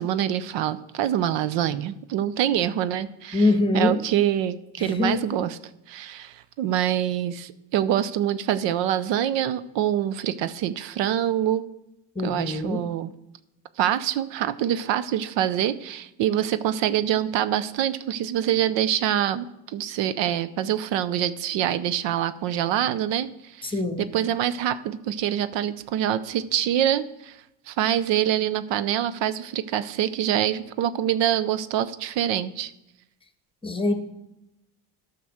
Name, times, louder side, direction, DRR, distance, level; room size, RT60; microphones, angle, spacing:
voice 1, 0.0-3.5 3.7-5.6 5.9-11.7 12.2-13.1 13.8-27.4 27.7-32.7, right 11 dB, 80° right, 15 dB, 0.7 m, -25 dB
voice 2, 3.3-4.0 4.8-5.2 12.1-12.8 23.6-24.1 33.6-33.9, left 2 dB, 10° left, 8 dB, 1.2 m, -23 dB
11.0 x 5.9 x 6.5 m, 0.88 s
cardioid pair, 90°, 43 cm